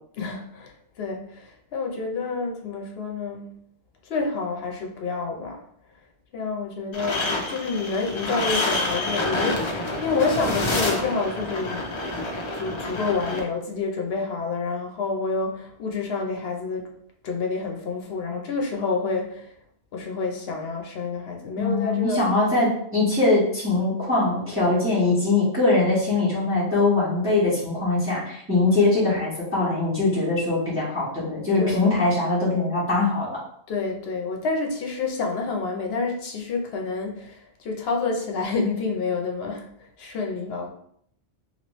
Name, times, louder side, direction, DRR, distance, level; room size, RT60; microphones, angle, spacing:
voice 1, 0.1-3.5 4.1-5.6 6.3-11.9 12.5-16.9 17.2-19.5 19.9-22.2 31.6-31.9 33.7-39.7 40.0-40.7, left 4 dB, 65° left, 2 dB, 0.9 m, -28 dB
sound 1, 6.9-13.4, left 2 dB, 40° left, 0.4 m, -27 dB
voice 2, 21.6-33.3, left 2 dB, 10° right, -10 dB, 1.2 m, -22 dB
3.0 x 2.9 x 3.0 m, 0.68 s
omnidirectional pair, 1.2 m